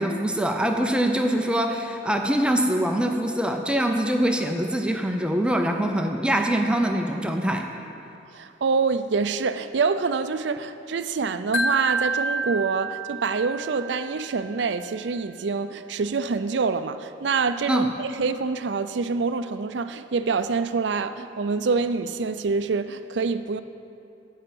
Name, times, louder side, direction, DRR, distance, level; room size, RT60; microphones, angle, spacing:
voice 1, 0.0-7.6 17.7-17.9, right 1 dB, 5° right, 0.6 m, -24 dB
voice 2, 8.3-23.6, right 4 dB, 70° right, 0.5 m, -26 dB
Wind chime, 11.5-14.6, right 2 dB, 70° left, 0.8 m, -29 dB
15.0 x 5.6 x 7.7 m
head